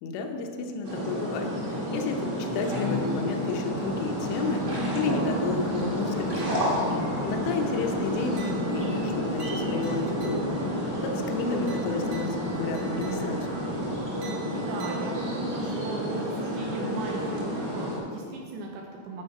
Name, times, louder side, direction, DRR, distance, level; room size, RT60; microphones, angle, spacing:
voice 1, 0.0-6.6 7.2-13.6, left 4 dB, 75° left, 3 dB, 2.8 m, -32 dB
sound 1, 0.8-18.0, equal, 30° right, 1.5 m, -30 dB
sound 2, 3.7-14.1, left 1 dB, 55° left, 0.3 m, -42 dB
sound 3, 6.4-6.9 7.3-7.7 8.4-10.8 11.7-13.6 14.2-15.6, right 6 dB, 55° right, 3.6 m, -50 dB
voice 2, 6.6-7.2 14.4-19.2, right 2 dB, 80° right, 0 dB, 2.9 m, -37 dB
11.0 x 6.8 x 5.4 m, 2.2 s
omnidirectional pair, 5.8 m